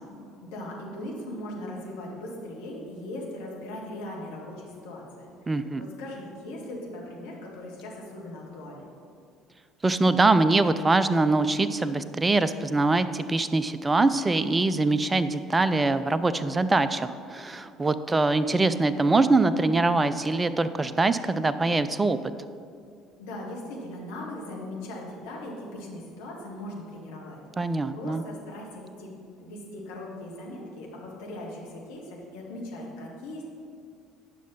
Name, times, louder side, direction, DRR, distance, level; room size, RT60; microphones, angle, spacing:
voice 1, 0.4-8.9 23.2-29.1 29.4-33.4, left 1 dB, 65° left, -3 dB, 1.9 m, -39 dB
voice 2, 5.5-5.8 9.8-22.2 27.6-28.2, right 3 dB, 20° right, 13 dB, 0.5 m, -23 dB
10.5 x 6.1 x 5.4 m, 2.3 s
figure-of-eight pair, 55°, 0 cm